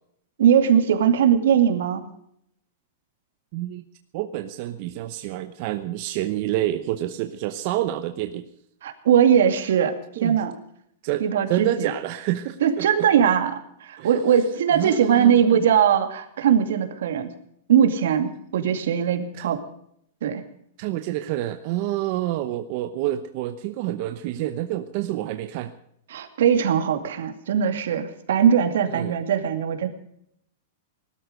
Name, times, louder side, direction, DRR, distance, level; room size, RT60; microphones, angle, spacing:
voice 1, 0.4-2.0 8.8-10.5 11.2-11.9 12.6-17.3 17.7-19.6 20.2-20.4 26.1-29.9, right 8 dB, 75° right, 7 dB, 2.4 m, -20 dB
voice 2, 3.5-3.8 4.1-8.5 10.2-10.4 11.0-13.1 14.0-14.2 14.7-15.7 19.3-19.5 20.8-25.7 28.9-29.2, right 14 dB, 40° right, 7 dB, 0.9 m, -28 dB
19.5 x 13.0 x 5.2 m, 0.72 s
supercardioid pair, 170°, 0 cm